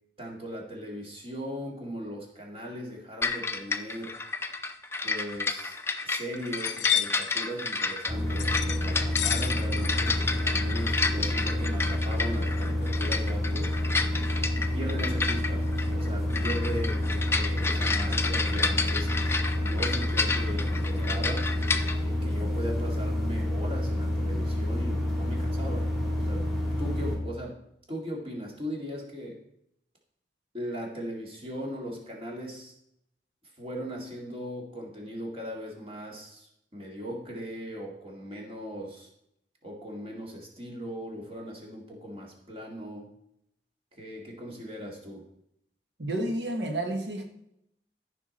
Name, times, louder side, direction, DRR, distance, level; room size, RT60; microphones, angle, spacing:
voice 1, 0.2-4.2 5.0-13.7 14.7-19.1 19.6-21.5 22.0-25.9 26.1-26.5 26.8-27.6 27.9-29.4 30.5-32.7 33.6-39.1 39.6-43.1 43.9-45.3, equal, 30° right, -1 dB, 2.1 m, -38 dB
sound 1, 3.2-22.0, left 4 dB, 15° left, 0.5 m, -31 dB
sound 2, 5.4-5.5 5.9-6.0 6.4-7.3 8.4-8.8 9.2-9.9 10.2-10.6, left 11 dB, 80° left, 0.6 m, -30 dB
sound 3, 8.1-27.2, left 1 dB, ahead, 2.5 m, -29 dB
voice 2, 46.0-47.2, right 1 dB, 85° right, 3 dB, 1.3 m, -30 dB
14.0 x 5.8 x 4.2 m, 0.76 s
head